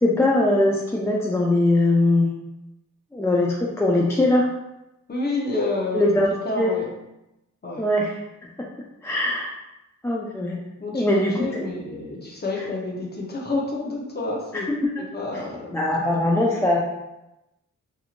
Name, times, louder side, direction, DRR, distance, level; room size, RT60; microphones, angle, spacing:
voice 1, 0.0-2.3 3.1-4.5 5.9-6.3 6.6-6.7 7.8-8.2 8.6-8.7 9.0-9.5 10.0-10.6 10.9-11.7 12.6-12.7 14.5-14.9 15.3-15.5 15.7-16.8, left 1 dB, 10° left, -3 dB, 0.3 m, -21 dB
voice 2, 5.1-6.0 6.3-6.9 7.6-7.9 10.8-14.7 15.0-15.8, left 2 dB, 30° left, -3 dB, 0.7 m, -29 dB
2.9 x 2.6 x 2.4 m, 0.93 s
wide cardioid pair, 95°, 33 cm